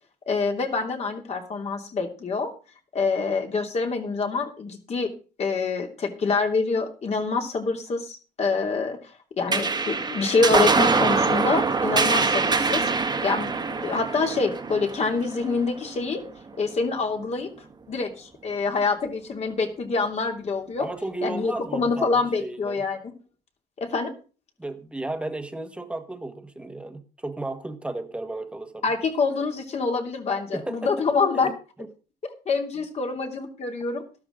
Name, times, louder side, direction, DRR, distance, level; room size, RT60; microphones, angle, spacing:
voice 1, 0.3-2.5 2.9-5.1 5.4-9.0 9.4-12.9 13.2-16.2 16.5-17.5 17.9-20.9 21.2-23.1 23.8-24.1 28.8-31.5 32.5-34.0, left 4 dB, 40° left, 3 dB, 2.8 m, -26 dB
sound 1, 9.5-16.3, right 4 dB, 25° right, 1.7 m, -24 dB
voice 2, 20.8-22.1 22.4-22.8 24.6-28.9 30.5-30.9 31.3-31.9, right 2 dB, 5° right, 7 dB, 1.7 m, -34 dB
13.0 x 12.5 x 3.8 m, 0.36 s
cardioid pair, 110°, 17 cm